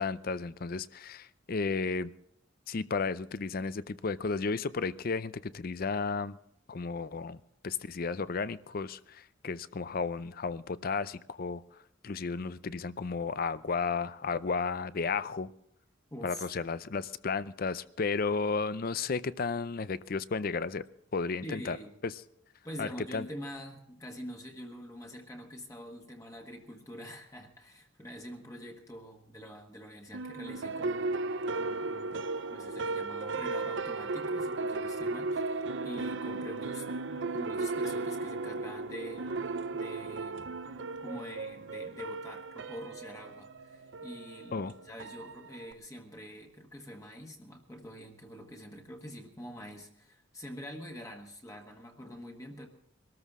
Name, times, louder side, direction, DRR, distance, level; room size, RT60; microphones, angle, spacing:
voice 1, 0.0-2.1 2.7-6.4 6.7-7.4 7.6-11.6 12.0-15.5 16.2-20.8 21.1-21.8 22.0-22.1 22.8-23.3 44.5-44.7, left 4 dB, 50° left, 15 dB, 0.5 m, -33 dB
voice 2, 16.1-16.5 21.4-21.9 22.6-39.3 39.7-40.5 41.0-52.7, equal, 15° left, 1 dB, 1.4 m, -45 dB
sound 1, 30.1-45.7, right 3 dB, 65° right, 0.6 m, -35 dB
23.0 x 13.5 x 3.7 m, 0.73 s
head